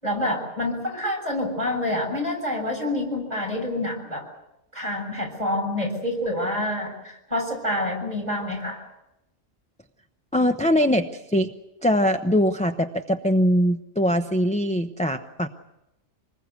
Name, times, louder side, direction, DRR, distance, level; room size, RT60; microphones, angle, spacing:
voice 1, 0.0-4.3 4.7-8.8, left 1 dB, 30° right, 2 dB, 7.1 m, -27 dB
voice 2, 10.3-11.5 11.8-15.5, equal, 5° left, 5 dB, 0.7 m, -22 dB
26.0 x 20.5 x 8.3 m, 0.91 s
omnidirectional pair, 1.4 m